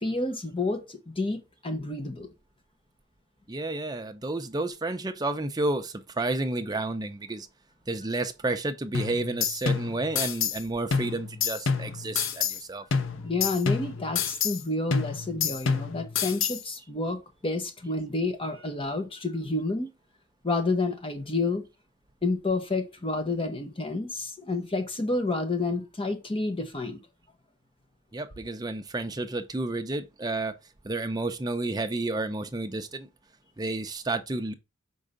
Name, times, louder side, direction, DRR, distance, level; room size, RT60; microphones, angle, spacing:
voice 1, 0.0-2.3 13.2-19.9 20.4-21.6 22.2-27.0, left 2 dB, 25° left, 1.2 m, -29 dB
voice 2, 3.5-7.5 7.9-12.8 28.1-30.5 30.8-33.1 33.6-34.5, right 2 dB, 20° right, 0.7 m, -31 dB
sound 1, 8.9-10.6 10.9-12.6 12.9-14.6 14.9-16.6, left 6 dB, 70° left, 0.7 m, -28 dB
5.5 x 3.8 x 5.0 m
head